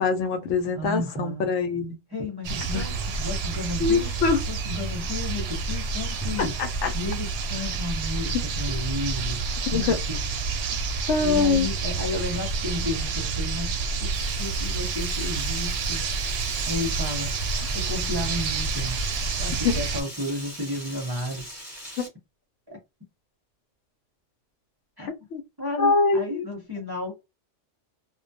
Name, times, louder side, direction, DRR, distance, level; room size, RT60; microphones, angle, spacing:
voice 1, 0.0-2.0 2.7-2.8 3.8-4.4 6.4-6.9 8.3-8.4 9.7-10.0 11.1-11.7 19.6-19.8 22.0-22.1 25.3-25.4 25.8-26.4, left 4 dB, 75° left, 0.9 m, -23 dB
voice 2, 0.7-1.5 2.1-4.1 4.5-6.6 6.9-10.2 11.2-13.7 14.0-16.0 16.7-17.3 17.7-19.0 19.4-21.5 22.7-22.8 25.0-25.1 25.6-27.1, left 2 dB, 25° right, 0.6 m, -33 dB
sound 1, 2.4-20.0, right 4 dB, 65° right, 0.7 m, -29 dB
Frying (food), 14.1-22.1, equal, 20° left, 1.0 m, -40 dB
2.2 x 2.2 x 2.6 m
omnidirectional pair, 1.3 m